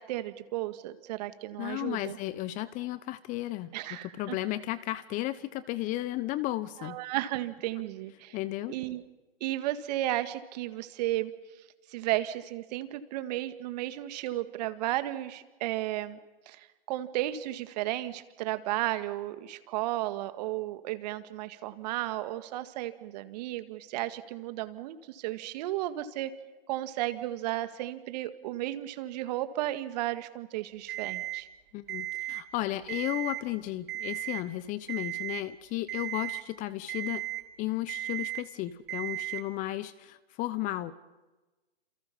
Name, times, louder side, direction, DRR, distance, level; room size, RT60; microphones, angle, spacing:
voice 1, 0.0-2.2 3.7-4.4 6.8-8.4 8.7-9.0 9.4-11.3 11.9-16.2 16.5-26.3 26.7-31.5, right 15 dB, 40° right, 11 dB, 2.0 m, -34 dB
voice 2, 1.6-3.7 4.2-7.0 8.3-8.8 31.7-37.2 37.6-40.9, left 16 dB, 25° left, 16 dB, 0.9 m, -34 dB
Alarm, 30.9-31.4 31.9-32.4 32.8-33.4 33.9-34.4 34.9-35.4 35.9-36.4 36.9-37.4 37.9-38.4 38.9-39.4, right 16 dB, 60° right, 3.0 m, -35 dB
28.5 x 28.5 x 5.6 m, 1.2 s
hypercardioid pair, 125°, 30 cm